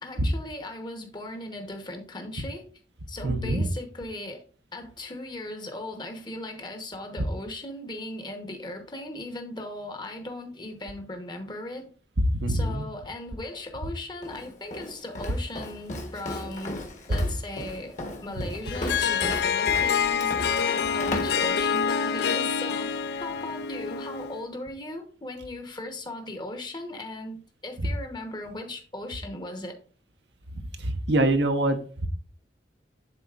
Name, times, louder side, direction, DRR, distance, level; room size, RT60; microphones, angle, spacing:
voice 1, 0.0-2.7 3.1-4.4 4.7-11.9 12.5-16.8 17.1-29.8, left 1 dB, 25° left, 0.9 m, -38 dB
voice 2, 3.2-3.7 12.3-12.9 30.8-32.1, right 1 dB, 75° right, 0.8 m, -25 dB
Walk footsteps, 14.2-22.0, left 1 dB, 45° left, 1.2 m, -36 dB
Harp, 18.7-24.4, left 7 dB, 65° left, 0.4 m, -26 dB
10.5 x 4.1 x 2.4 m
head